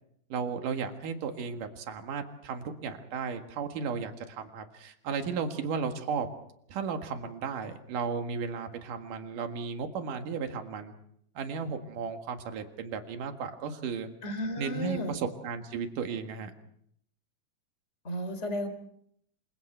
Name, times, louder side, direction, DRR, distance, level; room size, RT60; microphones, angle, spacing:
voice 1, 0.3-6.3 6.7-10.9 11.4-14.1 14.6-16.5, right 6 dB, 75° right, 5 dB, 3.3 m, -34 dB
voice 2, 14.2-15.2 18.0-18.7, left 1 dB, 20° left, 8 dB, 3.3 m, -33 dB
27.5 x 25.0 x 4.5 m, 0.69 s
omnidirectional pair, 3.8 m